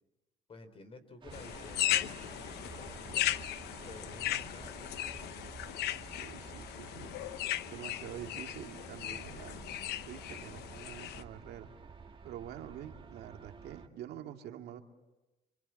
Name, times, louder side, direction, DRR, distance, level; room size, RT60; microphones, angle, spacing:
voice 1, 0.5-3.3 3.8-4.8, left 3 dB, 35° left, 11 dB, 3.9 m, -52 dB
sound 1, 1.2-13.9, right 5 dB, 30° right, 1.9 m, -50 dB
sound 2, 1.3-11.2, left 13 dB, 80° left, 0.9 m, -37 dB
voice 2, 6.1-7.1 7.6-9.6 10.0-11.7 12.2-14.8, right 10 dB, 75° right, 4 dB, 2.1 m, -46 dB
28.0 x 24.5 x 7.6 m, 1.0 s
cardioid pair, 110°, 17 cm